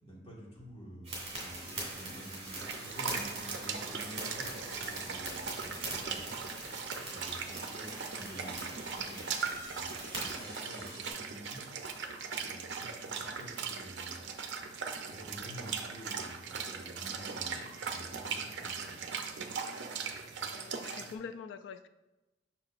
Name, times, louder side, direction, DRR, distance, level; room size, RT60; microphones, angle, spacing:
voice 1, 0.0-6.7 7.0-11.6 12.3-14.2 15.1-19.2, equal, 25° left, -6 dB, 1.6 m, -49 dB
sound 1, 1.0-11.1, right 2 dB, 30° right, 2.0 m, -42 dB
sound 2, 2.6-21.1, right 5 dB, 65° right, 0.5 m, -39 dB
voice 2, 20.4-21.9, left 6 dB, 65° left, 11 dB, 0.3 m, -45 dB
6.6 x 6.0 x 2.4 m, 1.1 s
head